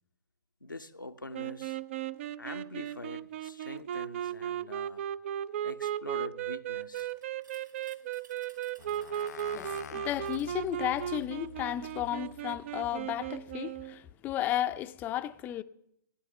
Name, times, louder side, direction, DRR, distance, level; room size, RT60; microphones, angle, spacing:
voice 1, 0.6-1.8 2.4-5.1 5.6-7.1, left 2 dB, 90° left, 0.8 m, -44 dB
sound 1, 1.3-14.0, right 11 dB, 40° right, 0.5 m, -36 dB
sound 2, 6.9-11.4, right 5 dB, 70° right, 2.3 m, -60 dB
sound 3, 8.8-13.5, left 8 dB, 55° left, 0.6 m, -48 dB
voice 2, 9.5-15.6, left 12 dB, 15° left, 0.5 m, -33 dB
15.5 x 9.8 x 7.1 m
figure-of-eight pair, 125°, 10 cm